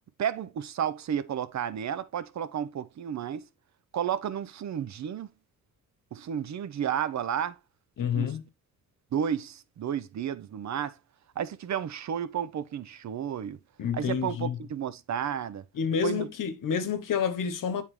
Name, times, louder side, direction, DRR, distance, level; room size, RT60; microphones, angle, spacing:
voice 1, 0.2-3.4 3.9-5.3 6.1-7.6 8.1-8.3 9.1-10.9 11.4-13.6 13.9-15.6 16.0-16.3, right 9 dB, 50° right, 0.7 m, -32 dB
voice 2, 8.0-8.4 13.8-14.6 15.7-17.8, left 7 dB, 65° left, 1.1 m, -29 dB
8.7 x 3.6 x 3.1 m
cardioid pair, 75°, 35 cm